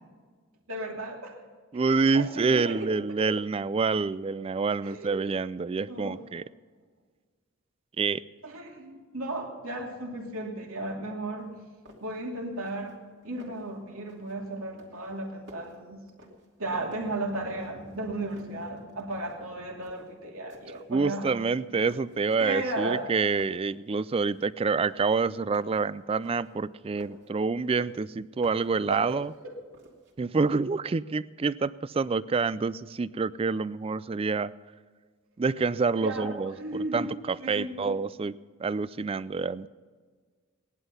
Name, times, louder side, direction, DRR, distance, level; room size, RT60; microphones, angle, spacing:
voice 1, 0.7-1.4 1.7-2.8 3.2-3.3 4.8-5.1 5.9-6.2 8.4-11.5 12.0-13.0 13.2-16.0 16.6-21.3 22.4-23.1 28.9-29.1 29.4-29.5 36.0-37.1 37.4-37.8, right 2 dB, 80° right, 0 dB, 2.6 m, -35 dB
voice 2, 1.7-6.4 8.0-8.2 20.9-29.3 30.2-34.5 35.4-38.3 38.6-39.7, right 4 dB, 25° right, 18 dB, 0.3 m, -27 dB
sound 1, 11.4-11.5 11.8-12.2 12.5-13.0 13.2-13.7 14.1-14.4 14.8-16.6 16.9-18.0 18.3-19.4 19.8-20.1 20.5-20.9 21.2-22.2 22.7-23.1 23.4-24.5 24.8-27.3 27.7-28.8 29.1-30.1, equal, 55° right, 2.7 m, -53 dB
18.5 x 11.5 x 5.6 m, 1.6 s
head